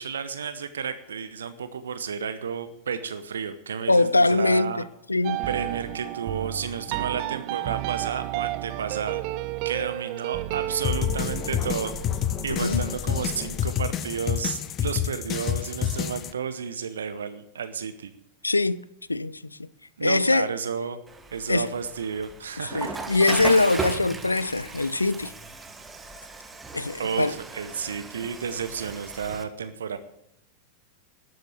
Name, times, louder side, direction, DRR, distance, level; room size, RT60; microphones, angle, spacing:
voice 1, 0.0-4.8 5.5-9.2 9.6-11.9 12.4-18.1 20.0-21.0 21.3-23.0 27.0-30.0, right 6 dB, 70° right, 0.8 m, -32 dB
voice 2, 3.9-4.8 5.1-5.4 12.5-12.8 18.4-18.8 19.1-19.7 20.0-20.5 21.5-21.7 22.6-25.3 26.7-27.3, left 2 dB, 80° left, 0.4 m, -22 dB
sound 1, 5.2-14.4, right 17 dB, 45° right, 0.5 m, -33 dB
sound 2, 10.8-16.3, left 10 dB, 30° left, 0.7 m, -28 dB
Water / Toilet flush, 21.1-29.4, right 3 dB, 10° right, 1.4 m, -37 dB
12.0 x 7.8 x 7.5 m
figure-of-eight pair, 90°, 0 cm